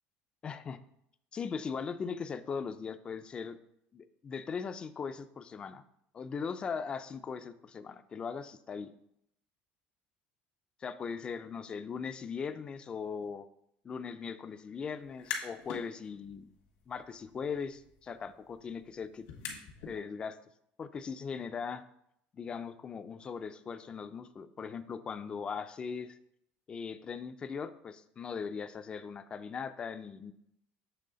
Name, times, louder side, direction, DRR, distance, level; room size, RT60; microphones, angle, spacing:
voice 1, 0.4-0.8 1.3-3.6 3.9-5.8 6.1-8.9 10.8-13.5 13.8-16.5 16.9-19.3 19.9-20.4 20.8-21.8 22.3-26.2 26.7-30.3, left 6 dB, 20° left, 11 dB, 0.3 m, -39 dB
sound 1, 15.0-15.8 16.2-20.0, left 7 dB, 80° left, 1.5 m, -44 dB
7.7 x 3.2 x 3.9 m, 0.75 s
cardioid pair, 155°, 4 cm